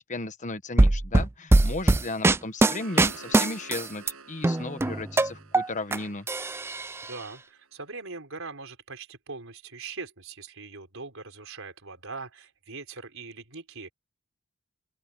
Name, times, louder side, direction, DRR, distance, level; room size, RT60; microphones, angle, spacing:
voice 1, 0.0-6.3, left 2 dB, 35° left, 1.3 m, -35 dB
sound 1, 0.8-4.1 4.4-6.0 6.3-7.2, right 2 dB, 10° right, 0.3 m, -21 dB
sound 2, 2.4-7.4, right 4 dB, 85° right, 7.2 m, -50 dB
voice 2, 7.0-13.9, right 4 dB, 70° right, 5.3 m, -41 dB
open air
head